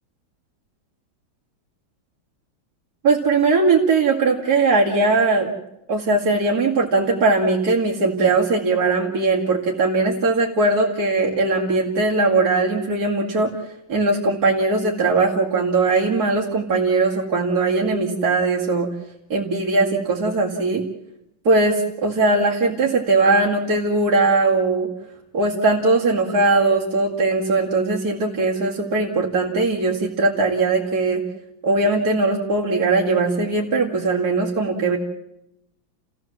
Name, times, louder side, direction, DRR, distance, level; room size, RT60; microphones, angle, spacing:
voice 1, 3.0-5.5 5.9-13.5 13.9-18.9 19.3-20.8 21.4-24.9 25.3-31.2 31.6-35.0, right 3 dB, 50° right, -3 dB, 2.8 m, -20 dB
30.0 x 16.5 x 7.4 m, 0.84 s
omnidirectional pair, 2.1 m